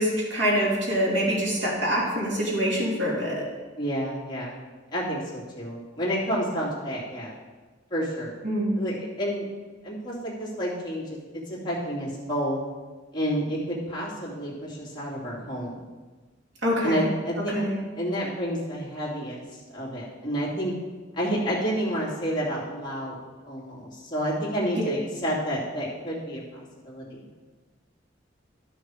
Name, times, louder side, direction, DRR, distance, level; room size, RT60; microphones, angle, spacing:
voice 1, 0.0-3.5 8.4-8.7 16.6-17.1 17.5-17.8 24.8-24.9, equal, 70° right, -4 dB, 3.0 m, -25 dB
voice 2, 3.8-4.5 4.9-7.3 7.9-8.3 8.8-9.4 9.8-11.2 11.5-12.6 13.1-15.7 16.8-17.6 18.0-20.7 21.2-27.3, equal, 25° left, -7 dB, 2.9 m, -30 dB
12.0 x 6.4 x 4.9 m, 1.3 s
head